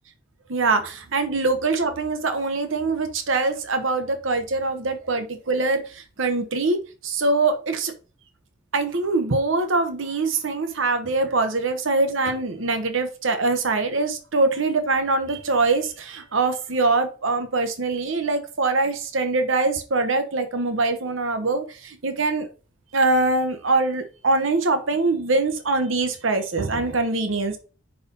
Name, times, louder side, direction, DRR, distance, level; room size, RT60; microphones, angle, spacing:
voice 1, 0.5-6.8 7.0-7.9 8.7-22.5 22.9-27.6, right 3 dB, 90° right, 8 dB, 1.0 m, -23 dB
5.3 x 4.8 x 5.2 m, 0.35 s
head